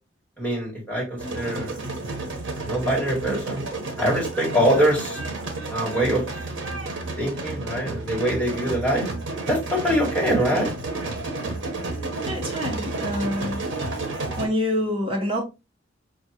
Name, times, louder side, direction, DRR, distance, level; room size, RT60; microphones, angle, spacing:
voice 1, 0.4-1.7 2.6-5.2 5.7-6.2 7.2-9.1 9.5-10.7, equal, 10° left, 1.7 m, -24 dB
sound 1, 1.2-14.5, right 2 dB, 70° right, 1.0 m, -31 dB
voice 2, 12.3-13.6 14.4-15.4, left 1 dB, 30° right, 1.1 m, -26 dB
5.2 x 2.5 x 2.9 m
head